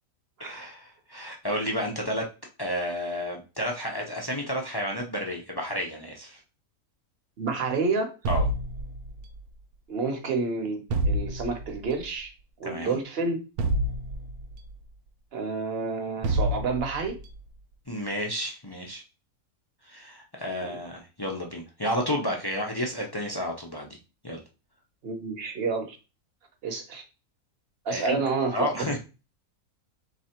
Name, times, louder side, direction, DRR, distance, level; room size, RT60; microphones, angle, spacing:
voice 1, 0.4-2.3 2.6-6.4 8.3-8.5 12.6-13.0 17.9-19.0 19.9-24.0 24.2-24.4 27.9-28.2 28.5-29.0, equal, 35° left, 1 dB, 0.3 m, -31 dB
voice 2, 7.4-8.2 9.9-12.3 12.6-13.4 15.3-17.2 20.6-20.8 25.0-26.0 26.6-27.0 27.8-28.9, right 4 dB, 45° right, 5 dB, 1.0 m, -29 dB
sound 1, 8.2-9.4 10.9-11.8 13.6-14.7 16.2-17.2, right 1 dB, 80° right, 1.1 m, -27 dB
3.7 x 3.0 x 4.3 m, 0.30 s
omnidirectional pair, 1.6 m